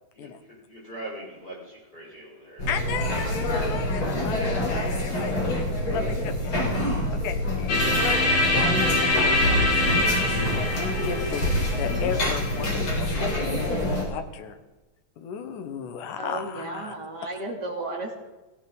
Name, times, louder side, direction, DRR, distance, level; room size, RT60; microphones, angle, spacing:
voice 1, 0.1-3.7, right 1 dB, 15° left, -5 dB, 6.7 m, -43 dB
sound 1, 2.6-14.0, left 1 dB, 40° left, 5.0 m, -26 dB
voice 2, 2.7-6.6 7.1-9.7 10.0-10.2 10.4-11.5 11.8-14.6 15.2-17.0, left 8 dB, 85° left, 7 dB, 2.7 m, -35 dB
sound 2, 7.7-13.6, left 2 dB, 55° left, 4.8 m, -25 dB
voice 3, 16.2-18.2, right 2 dB, 35° right, -1 dB, 3.2 m, -33 dB
17.5 x 16.0 x 4.0 m, 1.1 s
omnidirectional pair, 3.5 m